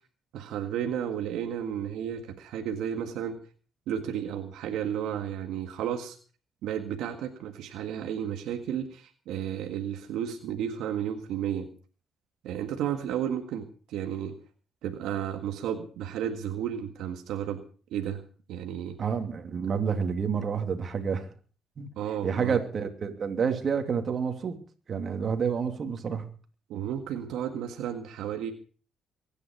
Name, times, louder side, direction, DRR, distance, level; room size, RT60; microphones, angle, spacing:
voice 1, 0.3-3.4 3.9-6.2 6.6-11.7 12.4-14.4 14.8-17.6 17.9-18.2 18.5-19.0 22.0-22.6 26.7-28.5, right 9 dB, 90° right, 5 dB, 1.8 m, -33 dB
voice 2, 19.0-21.3 21.8-21.9 22.2-24.6 24.9-26.3, right 6 dB, 50° right, 5 dB, 2.9 m, -29 dB
23.5 x 10.0 x 4.6 m, 0.40 s
cardioid pair, 90°, 0 cm